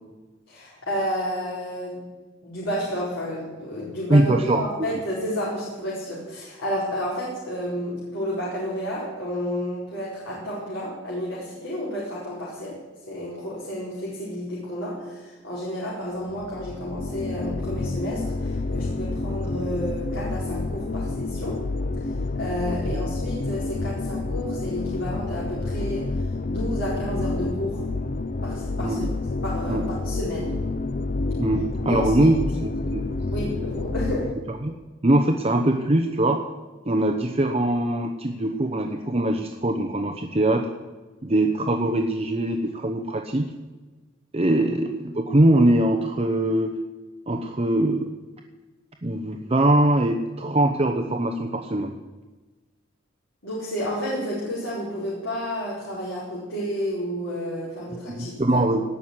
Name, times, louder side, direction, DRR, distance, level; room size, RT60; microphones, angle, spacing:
voice 1, 0.5-2.1 2.4-12.8 13.1-21.6 22.3-27.8 28.4-29.1 29.4-30.6 31.9-32.3 33.3-34.3 53.4-58.6, equal, 80° left, -7 dB, 4.9 m, -31 dB
voice 2, 4.1-4.6 22.9-23.0 28.8-29.1 29.7-29.8 31.4-33.1 34.6-34.7 35.0-36.4 36.9-40.7 41.2-43.5 44.3-46.8 47.3-48.1 49.0-52.0 58.1-58.8, right 1 dB, 30° right, 4 dB, 0.9 m, -22 dB
sound 1, 16.3-34.3, left 3 dB, 45° left, 0.5 m, -29 dB
18.5 x 6.4 x 9.9 m, 1.3 s
head